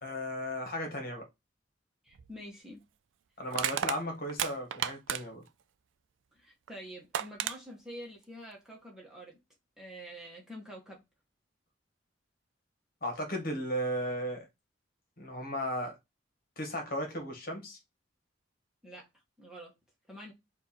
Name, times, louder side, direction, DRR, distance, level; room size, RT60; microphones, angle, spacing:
voice 1, 0.0-1.2 3.4-5.4 13.0-14.5 15.2-16.0 16.6-17.8, equal, 50° left, 1.7 m, -35 dB
voice 2, 2.0-2.8 6.3-9.4 9.8-11.0 18.8-19.1 19.4-19.7 20.1-20.3, equal, 5° right, 1.3 m, -47 dB
Crushing, 2.1-2.3 3.5-5.5 6.7-6.8 7.1-7.6, right 10 dB, 85° right, 0.4 m, -33 dB
4.6 x 2.7 x 4.3 m
head